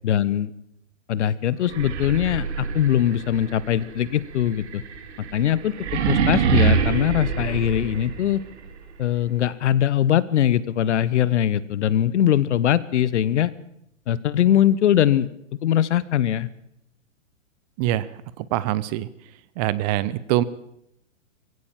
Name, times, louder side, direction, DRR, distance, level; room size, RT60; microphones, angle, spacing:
voice 1, 0.0-0.5 1.1-4.8 5.2-8.4 9.0-13.5 14.1-15.3 15.6-16.5, left 11 dB, 60° left, 18 dB, 1.2 m, -21 dB
sound 1, 1.6-8.5, right 6 dB, 55° right, 3.2 m, -25 dB
voice 2, 18.4-19.1 19.6-20.4, right 14 dB, 30° right, 18 dB, 0.8 m, -24 dB
21.5 x 16.0 x 7.6 m, 0.78 s
hypercardioid pair, 125°, 39 cm